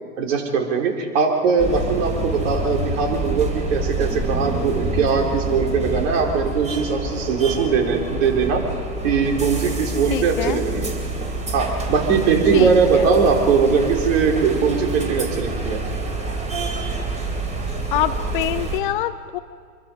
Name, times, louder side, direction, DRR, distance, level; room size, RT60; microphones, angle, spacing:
voice 1, 0.2-8.6 9.0-11.0 11.5-15.8, right 5 dB, 50° right, 2 dB, 4.5 m, -20 dB
sound 1, 1.6-18.8, right 2 dB, 15° right, 3.6 m, -27 dB
voice 2, 10.1-10.6 12.5-13.1 17.9-19.4, left 13 dB, 35° left, 11 dB, 0.6 m, -25 dB
25.5 x 23.0 x 5.4 m, 2.1 s
hypercardioid pair, 130°, 46 cm